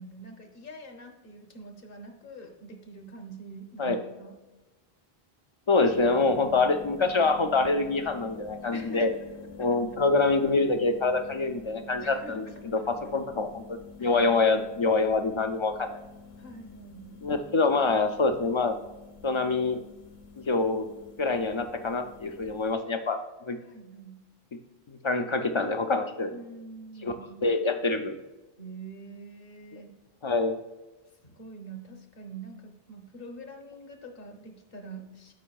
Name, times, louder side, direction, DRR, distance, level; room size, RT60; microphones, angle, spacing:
voice 1, 0.0-4.4 8.7-9.8 10.2-10.3 12.0-12.9 14.0-14.2 16.4-17.2 23.6-24.2 26.2-27.5 28.6-29.9 31.2-35.3, right 2 dB, 65° left, 4 dB, 1.2 m, -45 dB
voice 2, 5.7-9.1 9.6-12.4 12.7-15.9 17.2-18.8 19.2-19.8 20.4-20.9 21.2-23.2 23.5-23.6 24.9-26.3 27.0-27.1 27.4-28.2 29.7-29.8 30.2-30.5, left 3 dB, 50° left, 7 dB, 0.3 m, -25 dB
sound 1, 5.8-22.7, left 5 dB, 80° left, 1.0 m, -47 dB
11.5 x 5.3 x 2.3 m, 1.1 s
omnidirectional pair, 1.0 m